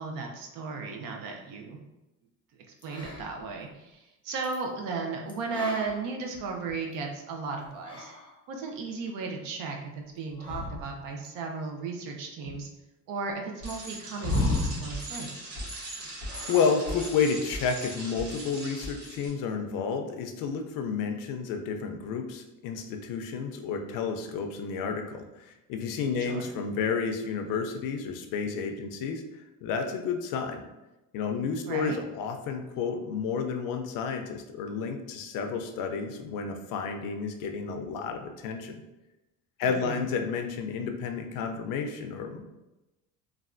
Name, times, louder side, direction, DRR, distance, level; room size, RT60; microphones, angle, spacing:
voice 1, 0.0-1.8 2.8-8.1 8.5-12.7 13.1-15.5 26.2-26.4 31.7-32.0 39.6-40.1, right 4 dB, 70° right, 2 dB, 0.6 m, -35 dB
sound 1, 2.8-3.5 4.4-4.6 5.3-6.9 7.6-8.4 10.3-11.3 12.4-12.5 14.2-15.0 16.3-16.8 17.1-17.5, left 2 dB, 15° left, 0.6 m, -33 dB
Bicycle, 13.6-19.3, right 1 dB, 85° right, 1.3 m, -39 dB
voice 2, 16.5-30.6 31.1-38.8 39.6-42.4, left 5 dB, 65° left, 5 dB, 0.5 m, -31 dB
3.2 x 2.3 x 2.5 m, 0.99 s
cardioid pair, 145°, 35 cm